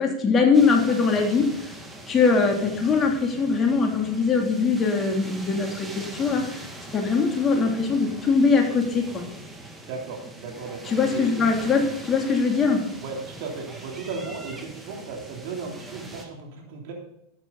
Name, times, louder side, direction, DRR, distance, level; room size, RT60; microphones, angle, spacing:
voice 1, 0.0-1.4 2.1-6.7 6.9-9.2 10.9-12.8, left 4 dB, 25° left, 1 dB, 3.0 m, -22 dB
sound 1, 0.5-16.2, right 2 dB, 10° right, 2.2 m, -42 dB
voice 2, 9.9-11.3 13.0-16.9, right 4 dB, 55° right, 0 dB, 3.4 m, -36 dB
12.5 x 8.6 x 4.0 m, 0.81 s
hypercardioid pair, 90°, 0 cm